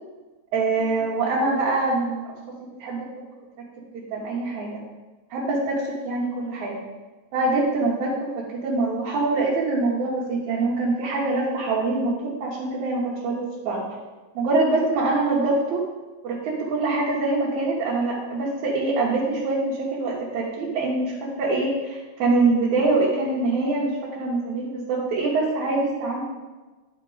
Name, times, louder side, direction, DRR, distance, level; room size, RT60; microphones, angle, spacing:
voice 1, 0.5-2.3 2.8-3.1 3.9-4.8 5.3-6.8 7.3-13.8 14.4-15.8 16.2-26.2, right 3 dB, 75° right, -6 dB, 2.5 m, -24 dB
11.0 x 3.7 x 5.0 m, 1.2 s
omnidirectional pair, 3.4 m